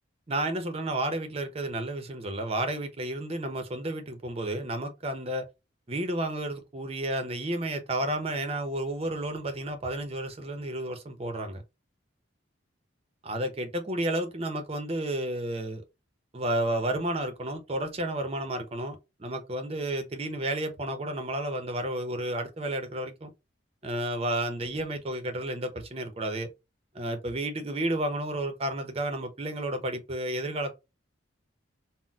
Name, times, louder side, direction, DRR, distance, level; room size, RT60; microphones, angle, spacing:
voice 1, 0.3-5.5 5.9-11.6 13.2-15.8 16.3-23.3 23.8-26.5 26.9-30.7, right 1 dB, 30° right, 0.5 m, -31 dB
4.0 x 2.0 x 2.3 m
head